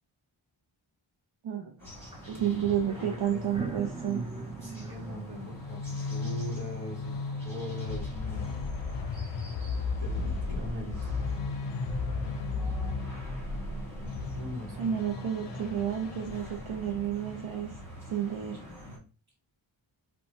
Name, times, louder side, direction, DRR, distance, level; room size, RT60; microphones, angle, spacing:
voice 1, 1.4-1.8 2.3-4.2 14.8-17.8 18.1-18.6, right 9 dB, 75° right, 1 dB, 0.6 m, -31 dB
sound 1, 1.8-19.0, equal, 5° left, 1.3 m, -45 dB
sound 2, 2.1-2.3 2.5-7.4, right 3 dB, 10° right, 0.4 m, -41 dB
voice 2, 2.9-3.6 4.6-5.8 6.1-7.1 7.4-8.7 10.0-11.2 14.3-14.9, left 1 dB, 50° right, -2 dB, 1.2 m, -40 dB
sound 3, 5.3-17.2, left 4 dB, 60° left, 0.5 m, -35 dB
2.7 x 2.2 x 3.0 m, 0.35 s
wide cardioid pair, 85°, 48 cm